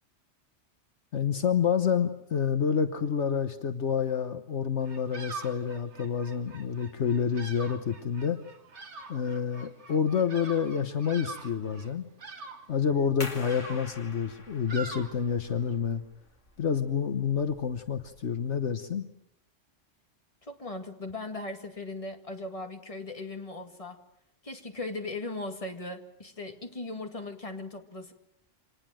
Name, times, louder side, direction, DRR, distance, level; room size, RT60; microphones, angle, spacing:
voice 1, 1.1-8.4 9.1-12.0 12.7-16.0 16.6-19.1, left 7 dB, 70° left, 8 dB, 1.4 m, -28 dB
Bird vocalization bird call bird song, 4.8-15.8, right 4 dB, 70° right, 1.9 m, -45 dB
sound 1, 13.2-18.5, left 3 dB, 85° left, 2.5 m, -46 dB
voice 2, 20.4-24.0 24.4-28.1, left 2 dB, 30° left, 4 dB, 2.2 m, -38 dB
26.0 x 19.5 x 7.7 m, 0.82 s
omnidirectional pair, 1.2 m